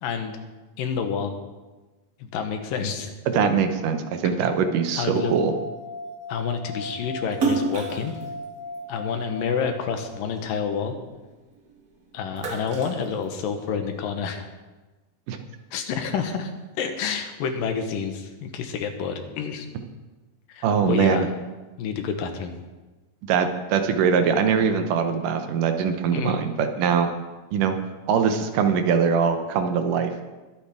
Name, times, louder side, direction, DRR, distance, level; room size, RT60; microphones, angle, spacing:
voice 1, 0.0-0.3 0.8-1.3 2.2-3.1 5.0-5.3 6.3-8.1 8.9-11.0 12.1-14.5 15.7-16.5 16.8-19.7 20.5-21.3 21.8-22.5 26.1-26.4, left 6 dB, 80° left, 6 dB, 2.8 m, -28 dB
voice 2, 3.3-5.5 15.3-15.4 20.6-21.3 23.3-27.1 27.5-27.8 28.1-30.2, right 6 dB, 75° right, 7 dB, 2.4 m, -22 dB
sound 1, 5.1-10.6, left 1 dB, 65° left, 3.0 m, -38 dB
Splash splatter, 7.3-9.9 10.3-11.8 12.1-13.9, right 4 dB, 55° right, 1.0 m, -30 dB
22.0 x 8.7 x 3.6 m, 1.2 s
omnidirectional pair, 3.9 m